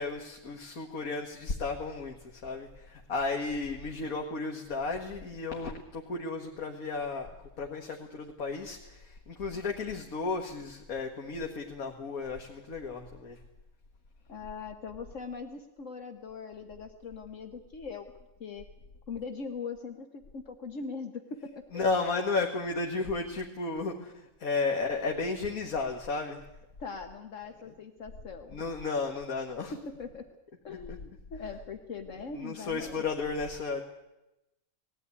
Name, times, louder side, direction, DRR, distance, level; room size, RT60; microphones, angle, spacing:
voice 1, 0.0-7.3 7.6-13.4 21.7-26.4 28.5-29.7 30.7-31.0 32.3-33.8, left 3 dB, 85° left, 2 dB, 2.0 m, -33 dB
voice 2, 14.3-18.1 18.4-18.6 19.1-21.8 26.8-28.6 29.7-30.3 30.6-33.0, left 5 dB, 65° left, 5 dB, 1.5 m, -41 dB
19.5 x 15.5 x 9.7 m, 0.95 s
omnidirectional pair, 1.5 m